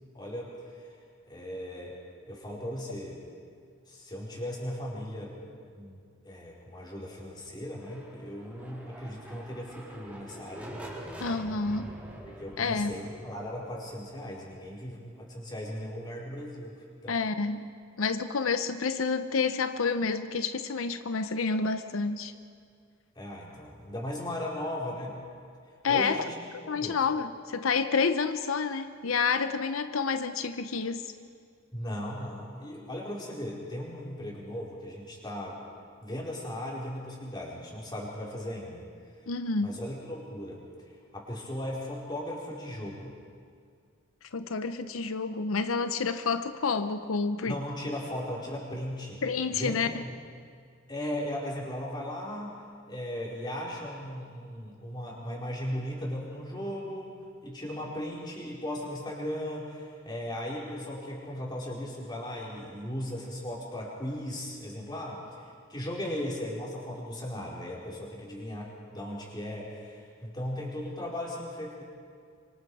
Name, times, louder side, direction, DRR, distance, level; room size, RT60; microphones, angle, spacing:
voice 1, 0.1-1.0 1.3-2.0 2.3-3.2 3.9-10.8 12.2-17.2 23.1-25.2 25.8-26.3 26.6-27.0 31.7-35.6 36.0-38.8 39.6-40.6 41.1-43.1 47.4-49.2 49.5-50.1 50.9-52.6 52.9-71.8, left 1 dB, 20° left, -4 dB, 4.7 m, -37 dB
sound 1, 7.6-15.4, right 1 dB, 5° right, 3.8 m, -46 dB
voice 2, 11.2-11.9 12.6-12.9 17.1-17.6 18.0-22.3 25.8-26.3 26.7-31.1 39.3-39.7 44.3-47.6 49.2-50.0, left 4 dB, 90° left, 10 dB, 0.7 m, -29 dB
25.5 x 25.0 x 4.9 m, 2.2 s
head